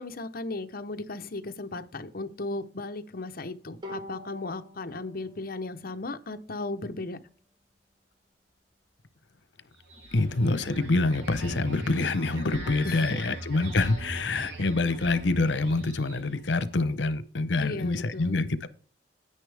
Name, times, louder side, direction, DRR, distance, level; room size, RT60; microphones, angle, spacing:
voice 1, 0.0-7.2 12.0-12.1 12.8-13.3 17.6-18.4, left 2 dB, 55° left, 0.9 m, -36 dB
Bowed string instrument, 3.8-7.2, left 1 dB, 25° right, 4.2 m, -46 dB
sound 1, 9.8-16.4, equal, 75° right, 4.8 m, -39 dB
voice 2, 10.1-18.7, left 2 dB, 90° left, 0.9 m, -26 dB
9.8 x 9.6 x 3.5 m
head